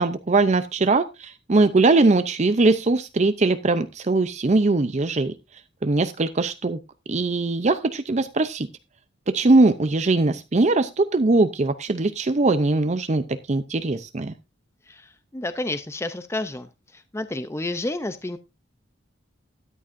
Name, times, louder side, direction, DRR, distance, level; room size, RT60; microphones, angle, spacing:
voice 1, 0.0-5.3 5.8-6.8 7.1-8.7 9.3-14.3, right 3 dB, 35° right, 10 dB, 0.6 m, -21 dB
voice 2, 14.9-18.4, left 2 dB, 15° left, 10 dB, 0.5 m, -30 dB
13.0 x 9.9 x 2.6 m, 0.25 s
head